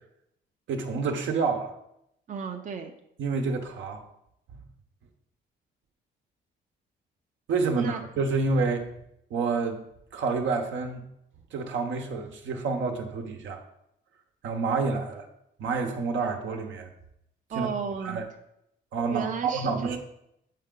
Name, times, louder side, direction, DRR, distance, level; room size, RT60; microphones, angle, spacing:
voice 1, 0.7-1.7 3.2-4.0 4.5-4.6 7.5-8.9 9.3-9.8 10.1-11.0 11.5-13.6 14.4-15.3 15.6-16.9 17.5-17.7 18.0-18.2 18.9-20.0, right 4 dB, 75° right, 4 dB, 1.0 m, -28 dB
voice 2, 2.3-2.9 7.8-8.0 17.5-18.2 19.1-20.0, right 6 dB, 40° right, 4 dB, 0.6 m, -33 dB
7.5 x 4.6 x 3.8 m, 0.79 s
cardioid pair, 90°, 20 cm